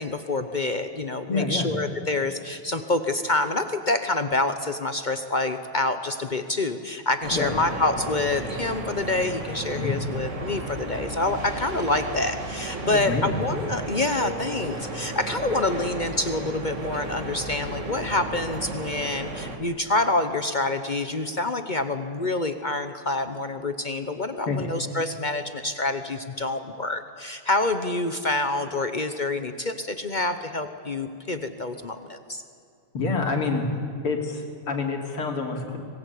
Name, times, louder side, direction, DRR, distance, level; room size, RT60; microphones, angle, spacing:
voice 1, 0.0-32.4, left 2 dB, 50° left, 9 dB, 0.5 m, -27 dB
voice 2, 1.3-1.7 7.3-7.5 9.8-10.0 12.9-13.4 24.5-24.6 32.9-33.7 34.0-35.8, left 4 dB, 80° left, 2 dB, 3.8 m, -27 dB
sound 1, 7.2-19.6, right 2 dB, 35° right, 2.3 m, -34 dB
25.0 x 20.5 x 8.5 m, 2.5 s
omnidirectional pair, 2.4 m